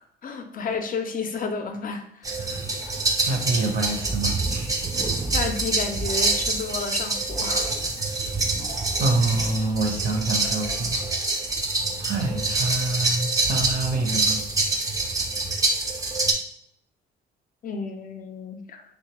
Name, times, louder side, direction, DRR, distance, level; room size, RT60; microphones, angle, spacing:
voice 1, 0.0-2.7 5.0-7.7 17.6-18.8, left 4 dB, 45° left, 6 dB, 0.5 m, -32 dB
sound 1, 2.2-16.3, right 2 dB, 20° right, 0.4 m, -26 dB
voice 2, 3.2-4.8 9.0-11.0 12.0-14.4, right 2 dB, 45° right, 2 dB, 0.7 m, -26 dB
3.1 x 2.1 x 3.0 m, 0.74 s
cardioid pair, 90°, 20 cm